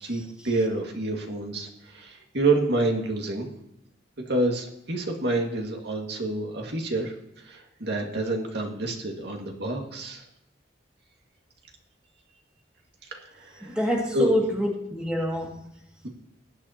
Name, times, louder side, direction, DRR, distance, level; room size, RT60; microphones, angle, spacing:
voice 1, 0.0-3.5 4.3-7.1 7.4-10.2 13.1-13.8 14.1-14.3, right 2 dB, 65° right, 2 dB, 2.0 m, -28 dB
voice 2, 13.6-15.6, equal, 5° right, -2 dB, 2.2 m, -26 dB
19.5 x 8.4 x 2.9 m, 0.81 s
head